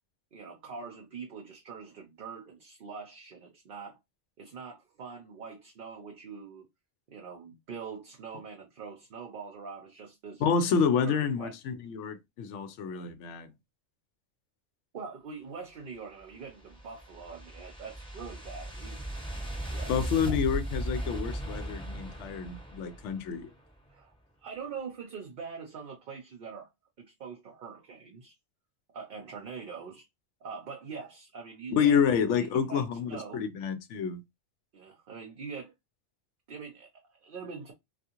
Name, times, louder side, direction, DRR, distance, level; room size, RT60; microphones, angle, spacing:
voice 1, 0.3-4.0 4.4-6.7 7.1-10.5 11.0-11.6 14.9-19.0 19.7-20.4 23.9-24.1 24.4-26.7 27.0-28.3 28.9-30.0 30.4-32.0 32.4-32.8 33.1-33.4 34.7-35.7 36.5-37.7, right 5 dB, 55° right, 0.7 m, -43 dB
voice 2, 10.4-13.5 19.9-23.5 31.7-34.2, left 6 dB, 85° left, 0.9 m, -28 dB
sound 1, 16.2-23.5, right 1 dB, 5° left, 0.7 m, -37 dB
3.5 x 2.4 x 2.8 m
omnidirectional pair, 1.2 m